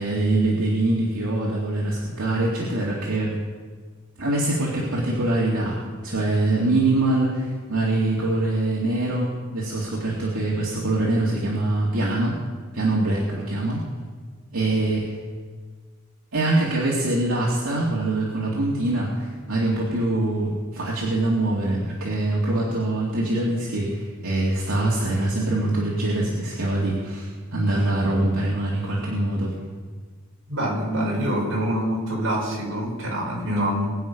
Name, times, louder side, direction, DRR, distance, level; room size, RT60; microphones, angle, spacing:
voice 1, 0.0-3.3 4.2-12.4 12.6-13.8 14.5-15.1 16.3-29.5, right 2 dB, 85° right, -4 dB, 2.4 m, -24 dB
voice 2, 30.5-34.0, equal, 65° right, -4 dB, 5.6 m, -25 dB
22.0 x 8.6 x 5.2 m, 1.5 s
head